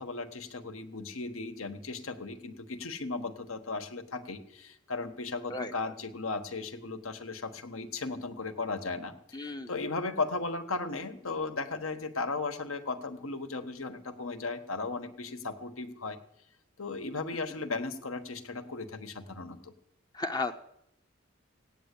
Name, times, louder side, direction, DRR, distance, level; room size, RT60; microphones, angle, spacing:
voice 1, 0.0-16.2 16.8-19.7, left 3 dB, 80° left, 8 dB, 1.4 m, -36 dB
voice 2, 9.3-9.7 20.2-20.6, left 3 dB, 20° left, 6 dB, 0.5 m, -33 dB
17.0 x 9.1 x 8.4 m, 0.77 s
head